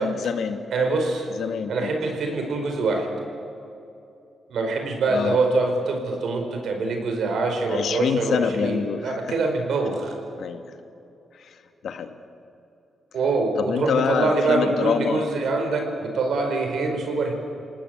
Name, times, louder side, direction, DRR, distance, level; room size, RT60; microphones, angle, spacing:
voice 1, 0.0-0.6 1.3-2.2 5.1-5.4 7.7-9.4 10.4-10.6 11.4-11.6 11.8-12.1 13.6-15.3, left 6 dB, 75° left, 7 dB, 1.8 m, -26 dB
voice 2, 0.7-1.3 1.7-3.1 4.5-10.1 13.1-17.3, right 3 dB, 75° right, 4 dB, 5.0 m, -24 dB
28.5 x 18.5 x 7.9 m, 2.7 s
cardioid pair, 100°, 0 cm